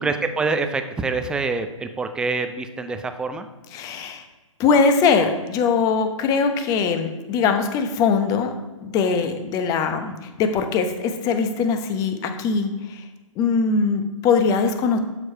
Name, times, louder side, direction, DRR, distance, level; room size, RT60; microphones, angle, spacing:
voice 1, 0.0-3.5, right 4 dB, 5° right, 8 dB, 0.4 m, -25 dB
voice 2, 3.7-4.2 4.6-8.5 8.8-13.0 13.4-15.0, left 5 dB, 20° left, 7 dB, 0.8 m, -21 dB
12.0 x 4.7 x 4.4 m, 1.2 s
figure-of-eight pair, 130°, 17 cm